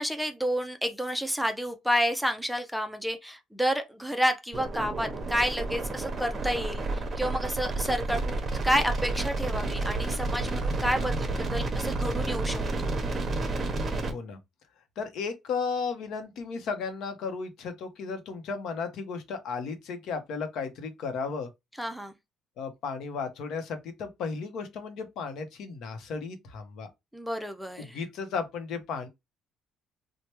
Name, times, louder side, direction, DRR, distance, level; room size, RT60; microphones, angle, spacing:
voice 1, 0.0-13.0 21.8-22.1 27.1-28.0, equal, ahead, 0.4 m, -30 dB
sound 1, 4.5-14.1, right 2 dB, 30° right, 0.8 m, -30 dB
voice 2, 14.0-14.4 15.0-21.5 22.6-26.9 27.8-29.1, left 5 dB, 70° left, 0.7 m, -34 dB
3.1 x 2.1 x 2.9 m
cardioid pair, 125°, 0 cm